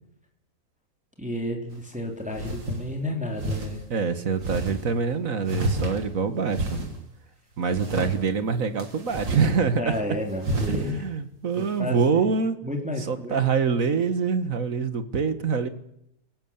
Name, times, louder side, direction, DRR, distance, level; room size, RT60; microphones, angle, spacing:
voice 1, 1.2-3.8 9.7-11.0 11.6-12.3 12.6-13.5, left 1 dB, 5° right, 2 dB, 3.3 m, -32 dB
sound 1, 1.7-1.8 2.3-2.8 3.4-3.7 4.4-4.8 5.4-6.2 6.5-7.0 7.7-8.1 8.8-9.6 9.8-9.9 10.4-10.9, right 1 dB, 85° right, 4.0 m, -29 dB
voice 2, 3.9-6.8 7.6-9.9 10.7-12.6 13.1-15.7, right 5 dB, 50° right, 11 dB, 1.8 m, -25 dB
27.0 x 17.0 x 7.3 m, 0.77 s
omnidirectional pair, 1.9 m